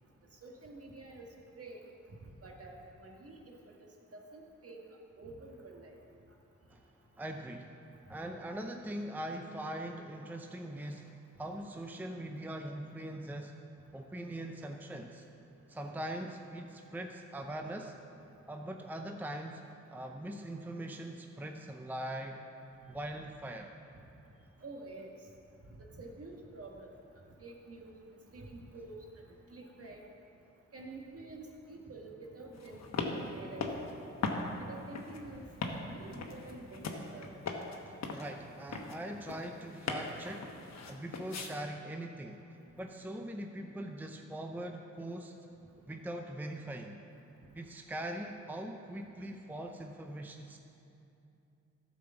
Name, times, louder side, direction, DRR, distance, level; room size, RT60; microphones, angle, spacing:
voice 1, 0.4-1.2 1.6-1.8 2.4-3.7 4.1-4.8 5.2-5.9 24.6-25.2 26.0-26.9 27.4-27.9 28.3-30.1 30.7-33.9 34.6-35.4 35.8-37.3, right 2 dB, 50° right, 0 dB, 1.7 m, -48 dB
voice 2, 7.2-7.8 8.1-13.5 13.9-15.3 15.7-18.0 18.5-19.6 19.9-22.4 22.9-23.7 37.9-40.5 40.9-42.4 42.8-45.4 45.9-47.0 47.5-50.6, right 1 dB, 5° right, 4 dB, 0.6 m, -41 dB
sound 1, 32.5-41.5, left 4 dB, 60° left, 1.1 m, -40 dB
12.0 x 5.2 x 6.9 m, 2.8 s
cardioid pair, 65°, 30 cm